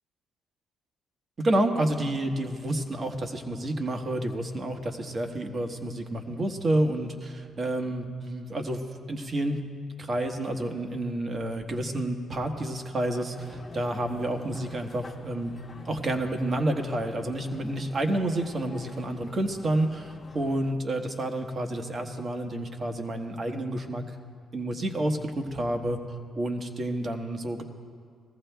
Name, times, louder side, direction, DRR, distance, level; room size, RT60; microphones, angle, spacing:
voice 1, 1.4-8.8 9.1-9.6 10.0-15.5 15.8-24.0 24.5-26.0 26.3-27.6, right 1 dB, 40° right, 5 dB, 1.1 m, -29 dB
sound 1, 13.3-20.7, left 3 dB, 25° left, 0.9 m, -47 dB
20.5 x 14.5 x 2.3 m, 2.2 s
cardioid pair, 90°, 0 cm